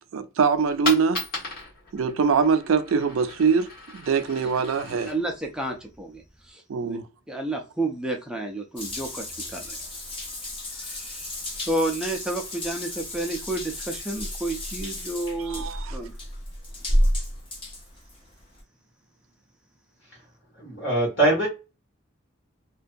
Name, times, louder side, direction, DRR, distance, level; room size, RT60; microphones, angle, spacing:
voice 1, 0.1-1.2 1.9-5.1 6.7-7.0 15.5-15.9, right 5 dB, 80° right, 0.4 m, -23 dB
Coin (dropping), 0.5-6.5, left 3 dB, 50° left, 1.4 m, -37 dB
voice 2, 4.8-7.0 7.3-9.8 10.8-11.3 11.7-16.1, right 2 dB, 5° right, 0.3 m, -31 dB
Water tap faucet / Bathtub (filling or washing) / Drip, 8.8-18.6, equal, 25° left, 0.7 m, -31 dB
voice 3, 20.6-21.5, right 2 dB, 65° left, 1.3 m, -22 dB
2.5 x 2.2 x 2.5 m
head